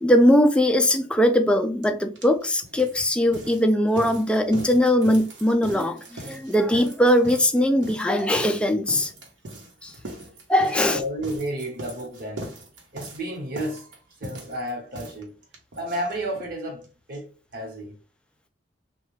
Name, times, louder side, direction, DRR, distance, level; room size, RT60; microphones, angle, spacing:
voice 1, 0.0-9.1 9.8-9.9 10.5-11.0, equal, 5° left, 0.4 m, -20 dB
sound 1, 1.8-1.9 2.2-16.5 16.8-16.9 17.1-17.2 17.5-17.6, right 1 dB, 80° right, 1.0 m, -41 dB
voice 2, 10.6-12.5 12.9-13.9 14.2-15.3 15.7-16.8 17.1-18.0, right 1 dB, 50° right, 1.1 m, -32 dB
3.3 x 2.3 x 3.1 m
head